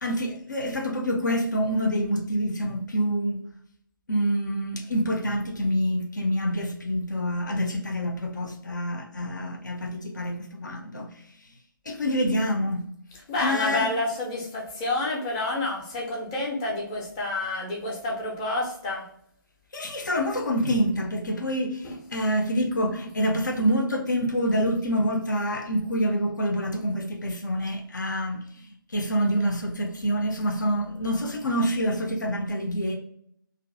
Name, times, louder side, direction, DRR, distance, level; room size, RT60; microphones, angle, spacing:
voice 1, 0.0-3.4 4.1-11.1 11.9-12.9 13.4-13.9 19.7-28.4 28.9-33.0, equal, 60° left, 0.6 m, -26 dB
voice 2, 13.3-19.0, left 2 dB, 15° left, 0.6 m, -29 dB
2.5 x 2.5 x 2.5 m
figure-of-eight pair, 145°, 11 cm